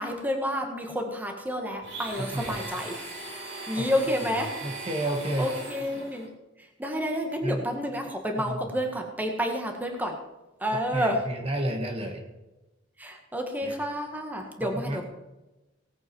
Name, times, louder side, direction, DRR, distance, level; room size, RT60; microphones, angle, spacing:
voice 1, 0.0-3.0 3.7-4.5 5.4-6.3 6.8-10.2 10.6-11.3 13.0-15.1, equal, 10° right, 3 dB, 1.6 m, -29 dB
Domestic sounds home sounds, 1.8-6.3, right 2 dB, 80° right, 5.6 m, -39 dB
voice 2, 4.6-5.5 7.4-7.6 8.4-8.7 10.9-12.2 13.6-13.7 14.6-15.1, right 1 dB, 30° right, 3 dB, 1.6 m, -31 dB
18.0 x 8.6 x 4.6 m, 1.0 s
head